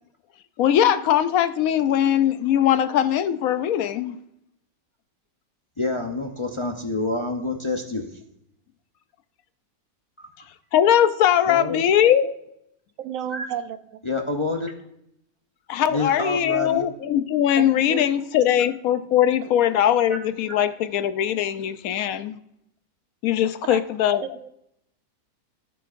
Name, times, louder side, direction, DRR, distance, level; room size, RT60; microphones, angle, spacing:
voice 1, 0.6-4.2 10.7-12.3 15.7-22.4 23.2-24.4, left 10 dB, 70° left, 11 dB, 1.0 m, -21 dB
voice 2, 5.8-8.0 11.5-11.8 13.3-13.5 14.0-14.7 15.9-16.9, left 2 dB, 50° left, 2 dB, 0.3 m, -27 dB
voice 3, 13.0-13.8 17.6-18.0 19.4-19.5 23.6-23.8 24.4-24.5, right 10 dB, 65° right, 10 dB, 1.0 m, -32 dB
16.5 x 5.8 x 2.5 m, 0.78 s
omnidirectional pair, 1.6 m